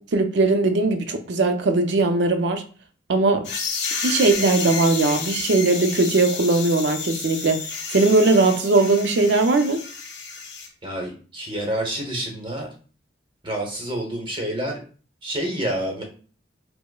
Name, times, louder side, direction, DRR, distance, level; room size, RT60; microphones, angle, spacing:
voice 1, 0.0-2.6 3.1-3.5 4.0-9.8, right 3 dB, 75° right, 0.5 m, -19 dB
sound 1, 3.4-10.7, left 5 dB, 75° left, 0.7 m, -31 dB
voice 2, 10.8-12.7 13.4-14.8 15.2-16.0, right 1 dB, 25° right, 0.8 m, -28 dB
4.8 x 2.0 x 2.3 m
head